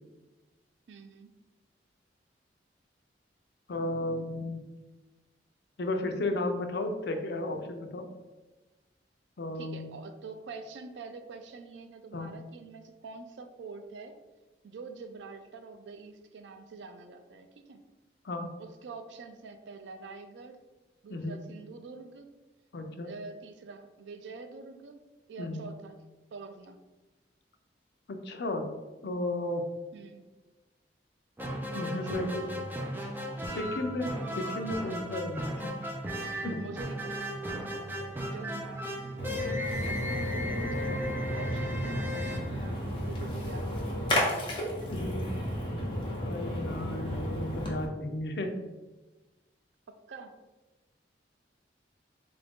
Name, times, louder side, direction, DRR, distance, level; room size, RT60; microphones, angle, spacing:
voice 1, 0.9-1.3 9.5-14.2 14.6-17.8 18.6-20.6 21.0-22.3 23.0-25.0 25.3-26.0 26.3-26.8 29.9-30.2 31.7-33.8 36.5-40.9 41.3-45.0 49.9-50.3, right 4 dB, 85° right, 7 dB, 0.4 m, -46 dB
voice 2, 3.7-4.6 5.8-8.1 9.4-9.9 12.1-12.4 18.2-18.5 21.1-21.4 22.7-23.1 25.4-25.6 28.1-28.7 29.0-29.7 31.7-32.5 33.5-35.7 36.4-36.6 44.9-45.3 46.2-48.6, left 1 dB, 65° left, 5 dB, 0.4 m, -34 dB
sound 1, 31.4-43.2, equal, 10° right, 0.4 m, -36 dB
Splash splatter, 39.2-47.8, left 1 dB, 30° left, 0.8 m, -33 dB
3.6 x 2.5 x 3.5 m, 1.2 s
head